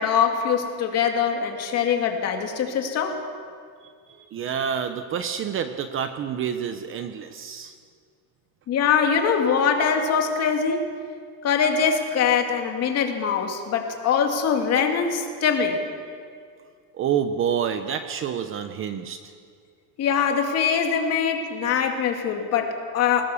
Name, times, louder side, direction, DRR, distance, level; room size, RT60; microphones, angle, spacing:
voice 1, 0.0-3.2 8.7-10.8 11.4-15.8 20.0-23.3, left 7 dB, 35° left, 3 dB, 2.4 m, -23 dB
voice 2, 4.2-7.7 16.9-19.3, right 8 dB, 30° right, 8 dB, 0.8 m, -28 dB
21.5 x 20.0 x 7.0 m, 2.2 s
cardioid pair, 170°, 45 cm